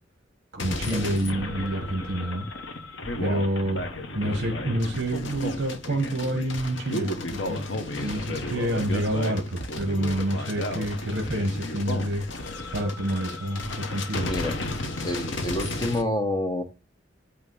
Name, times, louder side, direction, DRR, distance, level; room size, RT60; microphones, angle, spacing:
voice 1, 0.5-2.5 3.2-3.8 4.1-7.7 8.0-12.2 12.7-14.3, right 1 dB, 60° right, 1.0 m, -28 dB
sound 1, 0.6-16.0, left 2 dB, 75° left, 1.0 m, -33 dB
voice 2, 14.1-14.5 15.0-16.6, left 1 dB, 20° left, 0.9 m, -28 dB
8.4 x 2.9 x 5.4 m
head